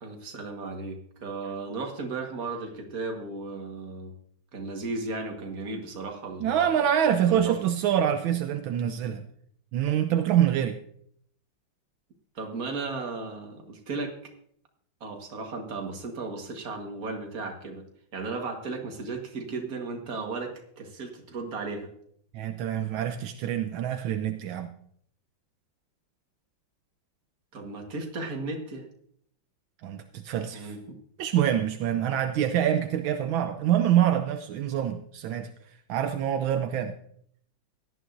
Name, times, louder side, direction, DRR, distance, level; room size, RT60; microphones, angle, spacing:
voice 1, 0.0-4.1 4.5-6.9 7.3-7.6 12.4-14.2 15.0-17.8 18.1-21.9 27.5-28.9 30.5-31.0, right 3 dB, 45° right, 3 dB, 1.9 m, -35 dB
voice 2, 6.4-9.3 9.7-10.8 22.3-24.7 29.8-30.8 31.2-35.5 35.9-36.9, right 10 dB, 80° right, 8 dB, 1.4 m, -25 dB
17.0 x 11.5 x 2.6 m, 0.67 s
omnidirectional pair, 2.2 m